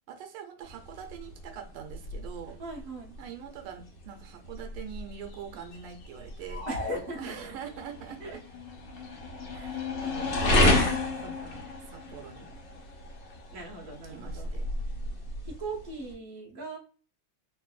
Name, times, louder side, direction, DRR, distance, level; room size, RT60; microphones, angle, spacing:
voice 1, 0.1-2.6 3.2-6.7 7.2-8.4 9.5-11.0 11.9-12.5 13.9-14.7, right 8 dB, 85° right, 5 dB, 1.5 m, -43 dB
sound 1, 0.6-16.1, left 2 dB, 60° left, 1.5 m, -32 dB
voice 2, 2.6-3.2 6.7-7.4 8.2-8.4 10.4-10.8 11.2-11.6 13.5-14.5 15.4-16.8, right 2 dB, 50° right, -2 dB, 1.2 m, -39 dB
sound 2, 6.5-7.9, left 3 dB, 80° left, 1.7 m, -39 dB
3.6 x 2.6 x 2.3 m, 0.40 s
omnidirectional pair, 2.3 m